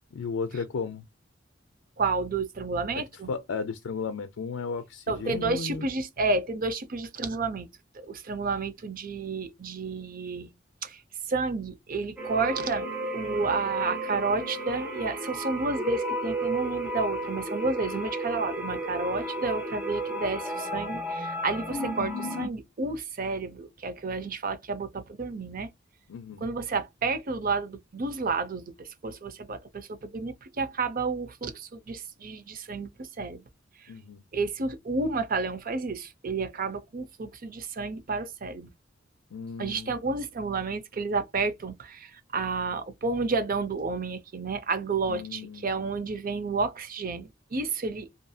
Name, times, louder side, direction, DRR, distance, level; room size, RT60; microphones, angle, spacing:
voice 1, 0.1-1.0 3.0-5.8 26.1-26.4 33.9-34.2 39.3-39.9 45.1-45.8, left 5 dB, 85° left, 0.4 m, -34 dB
voice 2, 2.0-3.3 5.1-7.7 8.0-10.5 10.8-11.0 11.3-12.9 13.1-25.7 26.4-32.9 33.2-33.4 34.3-38.7 39.6-48.1, right 3 dB, 45° right, 0.6 m, -31 dB
sound 1, 12.2-22.5, right 1 dB, 5° right, 0.9 m, -33 dB
2.7 x 2.6 x 2.3 m
head